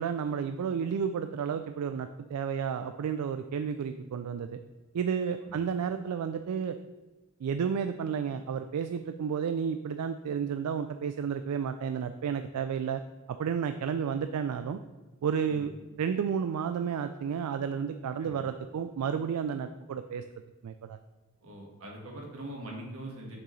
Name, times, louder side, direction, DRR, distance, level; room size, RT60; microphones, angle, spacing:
voice 1, 0.0-4.6 4.9-6.8 7.4-13.0 13.3-14.8 15.2-15.7 16.0-20.2 20.6-21.0, right 7 dB, 90° right, 9 dB, 0.3 m, -31 dB
voice 2, 21.4-23.4, right 1 dB, 70° right, 0 dB, 1.6 m, -42 dB
6.6 x 6.0 x 3.2 m, 1.2 s
head